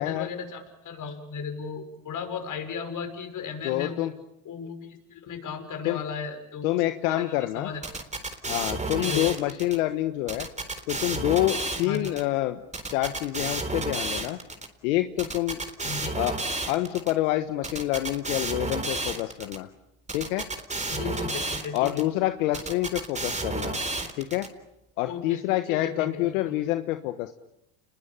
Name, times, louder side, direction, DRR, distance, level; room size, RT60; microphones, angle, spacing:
voice 1, 0.0-4.1 4.4-7.9 8.9-9.3 11.8-12.1 15.8-16.2 20.9-22.1 25.1-25.4 25.7-26.6, left 6 dB, 50° left, 7 dB, 6.3 m, -36 dB
voice 2, 3.6-4.1 5.8-6.0 6.6-7.7 8.5-10.5 10.9-12.6 12.9-14.4 14.8-15.6 16.1-16.3 16.7-19.7 20.1-20.5 21.7-23.8 24.2-24.5 25.0-27.3, left 16 dB, 80° left, 8 dB, 1.5 m, -27 dB
sound 1, 7.8-9.8 10.3-12.2 12.7-14.7 15.2-17.1 17.6-19.6 20.1-22.0 22.5-24.5, right 3 dB, 15° right, 4.0 m, -31 dB
29.5 x 21.5 x 8.9 m, 0.84 s
supercardioid pair, 85°, 41 cm